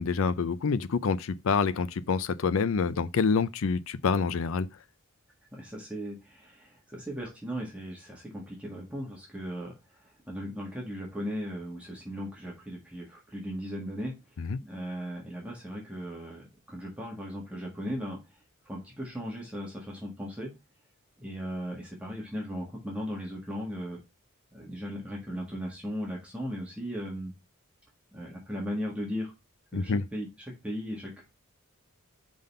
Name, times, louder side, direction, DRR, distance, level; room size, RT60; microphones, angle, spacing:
voice 1, 0.0-4.7 14.4-14.6 29.7-30.0, left 5 dB, 65° left, 0.5 m, -27 dB
voice 2, 5.5-18.2 18.6-20.5 21.2-24.0 24.5-27.3 28.1-29.3 29.7-31.2, equal, 5° right, 1.5 m, -37 dB
5.2 x 3.8 x 5.3 m
head